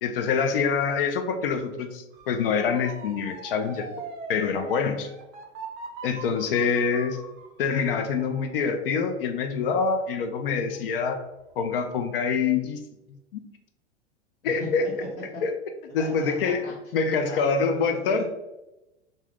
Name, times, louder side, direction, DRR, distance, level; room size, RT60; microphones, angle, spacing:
voice 1, 0.0-3.9 4.3-5.1 6.0-7.2 7.6-11.2 11.6-12.8 13.1-13.4 14.4-14.9 15.4-15.5 15.9-16.6 16.9-18.2, left 5 dB, 50° left, 6 dB, 0.4 m, -25 dB
Motor vehicle (road) / Siren, 2.1-11.0 11.5-11.9, right 4 dB, 25° right, 0.4 m, -43 dB
voice 2, 14.4-14.9 15.3-15.4 16.0-16.7 17.3-18.2, left 1 dB, 70° left, -6 dB, 0.9 m, -38 dB
2.6 x 2.1 x 3.3 m, 0.96 s
figure-of-eight pair, 90°, 36 cm